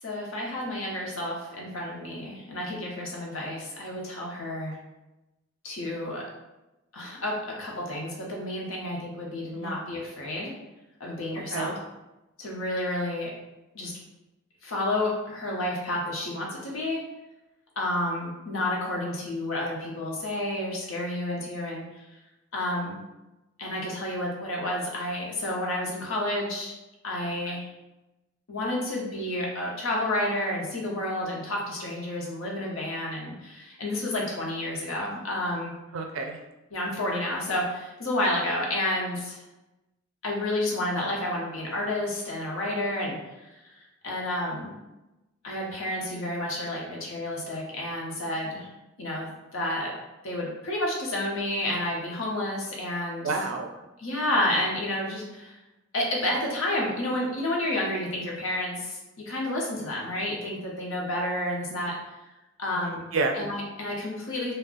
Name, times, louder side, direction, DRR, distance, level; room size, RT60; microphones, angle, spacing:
voice 1, 0.0-4.8 5.6-6.2 6.9-10.5 11.0-11.7 12.4-13.3 13.7-13.9 14.6-17.0 17.8-22.0 22.5-23.0 23.6-26.7 27.0-27.7 28.5-35.7 36.7-39.4 40.2-43.6 44.0-44.8 45.4-48.7 49.0-49.9 50.2-53.4 54.0-55.6 55.9-59.0 59.3-61.9 62.6-63.0 63.3-64.5, left 1 dB, 85° left, -2 dB, 0.8 m, -30 dB
voice 2, 35.9-36.4 53.2-53.7 62.7-63.3, right 3 dB, 75° right, 3 dB, 0.4 m, -30 dB
2.4 x 2.2 x 3.6 m, 1.0 s
head